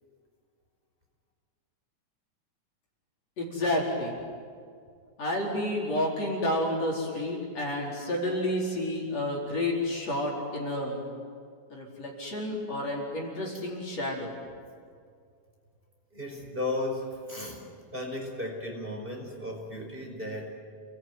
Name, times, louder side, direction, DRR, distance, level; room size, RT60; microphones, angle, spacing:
voice 1, 3.4-4.1 5.2-11.0 11.7-14.3, left 1 dB, 50° left, -2 dB, 5.7 m, -30 dB
voice 2, 16.1-17.6 17.9-20.6, left 2 dB, 15° right, 0 dB, 5.0 m, -35 dB
29.5 x 21.0 x 9.6 m, 2.2 s
omnidirectional pair, 3.7 m